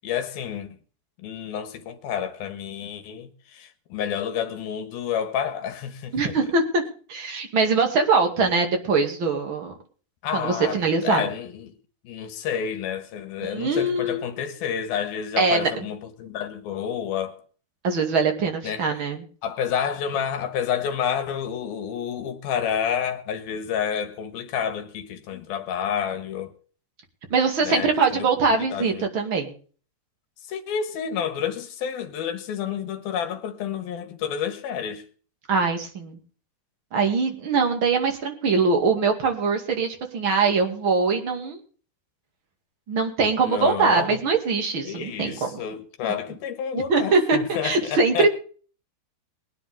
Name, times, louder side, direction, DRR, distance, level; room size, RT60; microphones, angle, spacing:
voice 1, 0.0-0.8 1.2-6.5 10.2-11.7 12.0-17.4 18.6-18.9 19.4-26.5 27.6-29.1 30.5-35.1 43.4-44.2 44.8-48.3, left 8 dB, 70° left, 3.2 m, -29 dB
voice 2, 6.1-6.8 7.1-9.7 10.3-11.3 13.4-14.2 15.4-15.7 17.8-19.2 27.3-29.5 35.5-36.2 36.9-41.6 42.9-45.5 46.9-47.4 47.6-48.3, right 4 dB, 35° right, 2.5 m, -22 dB
23.0 x 10.0 x 3.6 m
omnidirectional pair, 4.7 m